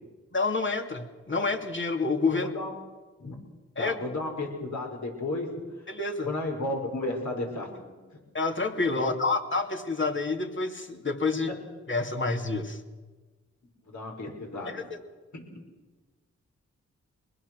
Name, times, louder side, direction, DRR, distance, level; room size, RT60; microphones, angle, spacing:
voice 1, 0.3-2.5 3.8-4.0 5.9-6.3 8.3-11.5 11.9-12.8 14.7-15.0, left 3 dB, 40° left, 4 dB, 2.6 m, -28 dB
voice 2, 2.3-2.7 3.2-3.3 3.8-5.5 6.3-8.0 9.0-9.1 11.5-11.6 13.9-14.8 15.3-15.5, left 2 dB, 65° left, 1 dB, 6.0 m, -33 dB
24.0 x 20.5 x 6.4 m, 1.3 s
cardioid pair, 50°, 31 cm